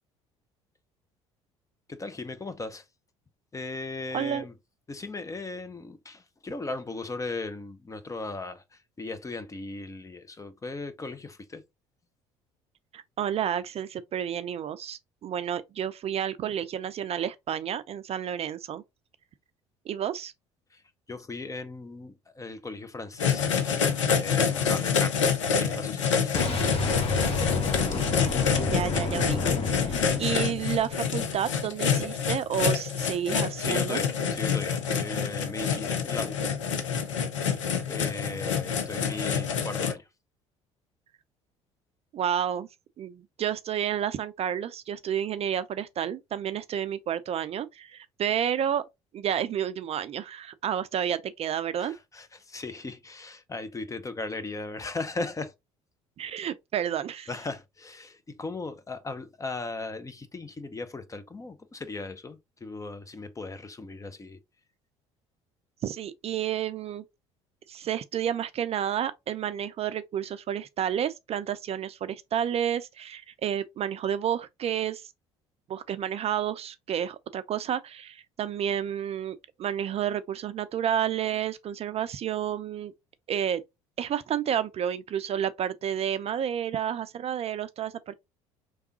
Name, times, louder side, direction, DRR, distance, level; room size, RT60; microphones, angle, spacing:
voice 1, 1.9-2.8 3.5-4.5 4.9-11.6 20.7-20.8 21.1-25.2 25.5-26.6 33.6-36.5 37.9-40.0 51.8-55.5 57.3-64.4, left 3 dB, 20° left, 0.8 m, -37 dB
voice 2, 4.1-4.4 12.9-18.8 19.9-20.3 28.6-34.0 42.1-42.7 43.0-48.8 49.1-51.9 56.2-57.3 65.8-67.0 67.7-75.1 75.7-82.9 83.3-83.6 84.0-88.1, right 9 dB, 40° right, 0.5 m, -30 dB
sound 1, 23.2-39.9, left 6 dB, 85° left, 0.7 m, -27 dB
Boom, 26.3-31.2, left 3 dB, 40° left, 1.3 m, -30 dB
4.6 x 3.5 x 2.8 m
hypercardioid pair, 60°, 15 cm